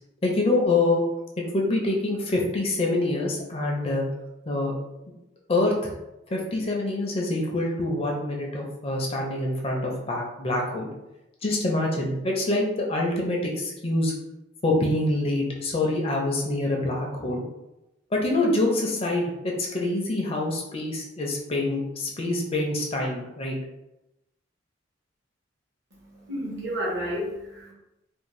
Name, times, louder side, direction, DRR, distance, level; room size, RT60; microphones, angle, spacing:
voice 1, 0.2-1.0 1.5-4.0 4.5-4.7 5.5-5.9 6.3-10.9 11.4-14.1 14.6-17.4 18.1-19.3 19.7-23.6, left 2 dB, 30° left, -1 dB, 0.4 m, -25 dB
voice 2, 25.9-27.7, equal, 60° right, -3 dB, 0.8 m, -31 dB
2.5 x 2.0 x 3.0 m, 0.93 s
head